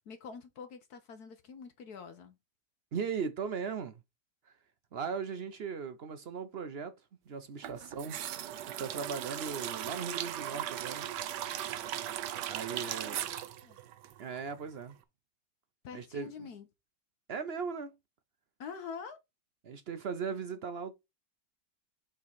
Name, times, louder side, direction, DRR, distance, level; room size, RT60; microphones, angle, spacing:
voice 1, 0.0-2.3 7.7-7.8 13.1-13.2 13.6-13.8 15.8-16.7 18.6-19.2, left 6 dB, 65° left, 1.3 m, -45 dB
voice 2, 2.9-4.0 4.5-4.6 4.9-6.9 7.3-8.2 8.7-11.1 12.5-13.2 14.2-15.0 15.9-16.3 17.3-17.9 19.6-20.9, right 6 dB, 65° right, 0.6 m, -38 dB
sound 1, 7.6-14.7 14.9-15.0, right 11 dB, 85° right, 1.3 m, -38 dB
7.2 x 3.8 x 4.1 m
omnidirectional pair, 1.9 m